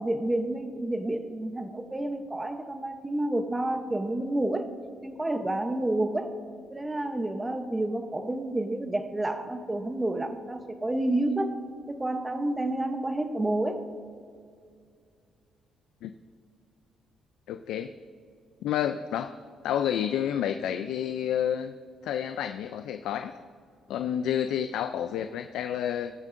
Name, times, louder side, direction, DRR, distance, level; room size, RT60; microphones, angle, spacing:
voice 1, 0.0-4.7 5.0-6.3 6.7-11.6 11.9-13.8, right 1 dB, 15° right, 8 dB, 0.8 m, -29 dB
voice 2, 17.5-17.9 18.6-19.4 19.6-21.7 22.0-23.3 23.9-26.1, left 9 dB, 85° left, 8 dB, 0.3 m, -29 dB
19.0 x 7.4 x 2.6 m, 2.2 s
cardioid pair, 90°, 0 cm